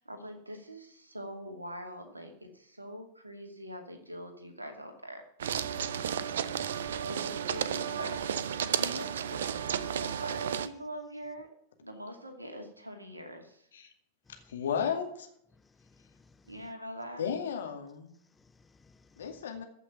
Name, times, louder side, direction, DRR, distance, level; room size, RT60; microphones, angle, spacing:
voice 1, 0.0-5.3 7.0-9.4 9.7-11.5 11.8-13.7 16.5-17.3, equal, 85° right, 2.5 m, -43 dB
sound 1, 5.4-10.7, right 8 dB, 60° right, 0.7 m, -33 dB
voice 2, 14.5-15.3 17.2-18.1 19.2-19.6, left 7 dB, 65° left, 2.3 m, -33 dB
voice 3, 15.6-16.5 18.3-19.4, left 3 dB, 15° left, 0.4 m, -62 dB
14.5 x 6.1 x 8.9 m
figure-of-eight pair, 90°, 0 cm